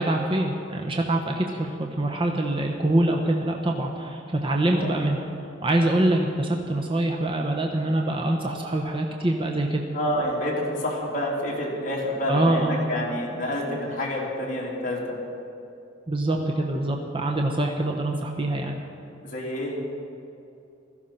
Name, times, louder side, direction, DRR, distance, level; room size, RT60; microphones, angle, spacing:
voice 1, 0.0-5.2 5.6-9.8 12.3-12.8 16.1-18.8, right 1 dB, 25° right, 1 dB, 1.0 m, -24 dB
voice 2, 4.6-5.1 9.9-15.0 19.2-19.8, left 1 dB, 40° left, -4 dB, 3.4 m, -28 dB
16.0 x 14.0 x 5.8 m, 2.6 s
head